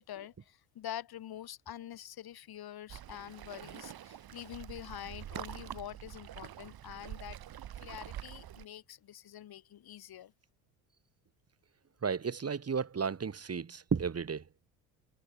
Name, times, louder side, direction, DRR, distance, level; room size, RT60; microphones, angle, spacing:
voice 1, 0.0-7.4 7.8-10.3, left 11 dB, 50° left, 7.9 m, -46 dB
Waves surf, 2.9-8.7, right 11 dB, 50° right, 6.4 m, -46 dB
voice 2, 12.0-14.4, right 6 dB, 30° right, 6.3 m, -33 dB
hypercardioid pair, 65°, 46 cm